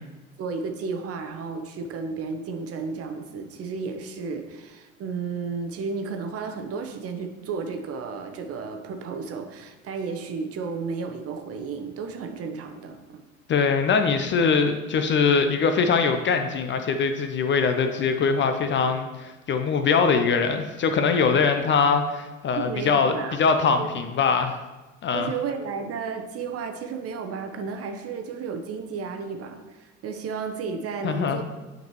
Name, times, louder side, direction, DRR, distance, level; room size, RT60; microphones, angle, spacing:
voice 1, 0.4-13.2 22.5-23.4 23.8-23.9 25.1-31.4, right 5 dB, 40° right, 6 dB, 0.9 m, -33 dB
voice 2, 13.5-24.6 25.0-25.3 31.0-31.4, left 5 dB, 30° left, 7 dB, 0.6 m, -22 dB
8.8 x 5.3 x 3.1 m, 1.1 s
figure-of-eight pair, 70°, 38 cm